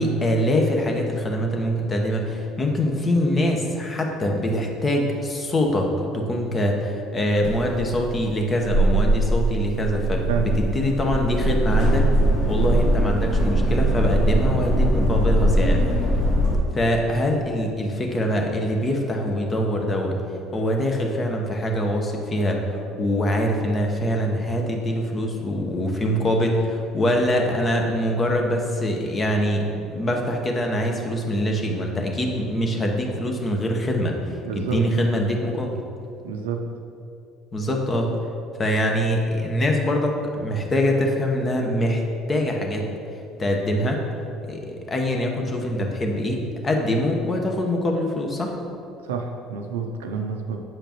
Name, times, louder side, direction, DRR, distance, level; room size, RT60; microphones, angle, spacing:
voice 1, 0.0-15.8 16.7-20.2 20.5-34.2 34.5-35.8 37.5-38.2 38.6-42.9 43.4-44.0 44.5-48.6, equal, 35° left, 2 dB, 1.0 m, -24 dB
sound 1, 7.4-16.6, right 1 dB, 65° left, 1.3 m, -21 dB
voice 2, 34.4-34.8 36.2-36.6 49.0-50.6, right 7 dB, 90° right, 4 dB, 0.5 m, -28 dB
7.3 x 5.0 x 3.0 m, 2.6 s
hypercardioid pair, 70°, 0 cm